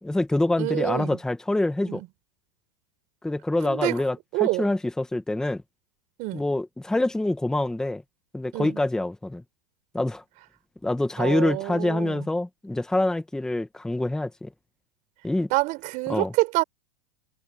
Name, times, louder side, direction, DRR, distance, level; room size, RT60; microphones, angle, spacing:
voice 1, 0.0-2.0 3.2-5.6 6.3-8.0 8.3-9.4 9.9-10.2 10.8-14.5 15.2-15.5 16.1-16.3, left 2 dB, 5° left, 1.1 m, -26 dB
voice 2, 0.6-1.2 1.8-2.1 3.6-3.9 4.3-4.7 6.2-6.4 8.5-8.8 11.2-12.3 15.5-16.6, right 21 dB, 40° right, 4.9 m, -27 dB
supercardioid pair, 155°, 19 cm